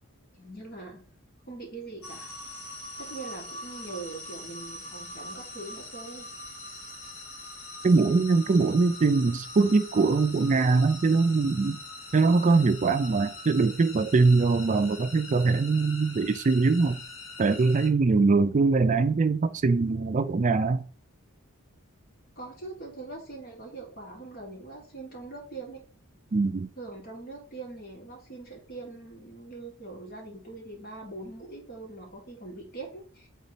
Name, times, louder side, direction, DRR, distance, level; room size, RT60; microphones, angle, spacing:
voice 1, 0.3-1.1 1.5-2.3 3.0-6.3 22.4-25.8 26.8-33.3, right 3 dB, 45° left, 2.8 m, -42 dB
sound 1, 2.0-17.9, left 2 dB, 70° left, 2.7 m, -43 dB
voice 2, 7.8-11.8 12.1-17.0 17.4-20.8 26.3-26.7, right 4 dB, 35° right, 0.4 m, -22 dB
8.3 x 4.0 x 4.0 m
head